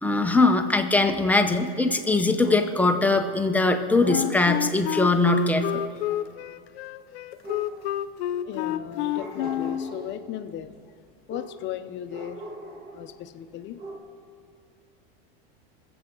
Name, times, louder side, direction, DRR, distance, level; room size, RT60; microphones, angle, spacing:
voice 1, 0.0-5.8, left 2 dB, 5° left, 5 dB, 0.8 m, -21 dB
sound 1, 2.4-3.0 4.0-4.4 7.4-8.1 9.0-10.2 11.3-11.7 12.1-13.2 13.5-14.0, right 1 dB, 30° right, 2.7 m, -40 dB
Wind instrument woodwind instrument, 4.1-10.0, left 12 dB, 80° left, 0.6 m, -29 dB
voice 2, 8.4-10.8 11.3-12.4 12.9-13.8, left 10 dB, 35° left, 9 dB, 0.8 m, -36 dB
21.5 x 7.8 x 3.9 m, 2.5 s
supercardioid pair, 125°, 31 cm